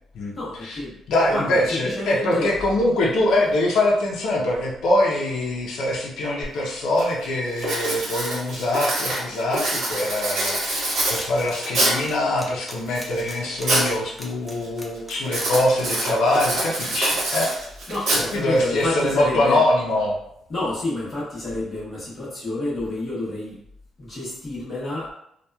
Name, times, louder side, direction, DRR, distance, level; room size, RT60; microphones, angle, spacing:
voice 1, 0.3-0.9 1.2-2.5 17.9-19.6 20.5-23.6 24.0-25.1, left 2 dB, 25° left, -8 dB, 0.9 m, -29 dB
voice 2, 1.1-17.5 18.3-20.2, left 1 dB, 85° left, -3 dB, 0.5 m, -23 dB
Writing, 6.4-6.5 7.0-7.2 7.6-12.1 12.7-13.9 14.2-14.7 15.2-18.7, right 1 dB, 75° right, 1.0 m, -25 dB
sound 1, 11.2-11.5 11.8-16.1, equal, ahead, 0.4 m, -39 dB
2.8 x 2.2 x 2.2 m, 0.75 s
cardioid pair, 170°, 0 cm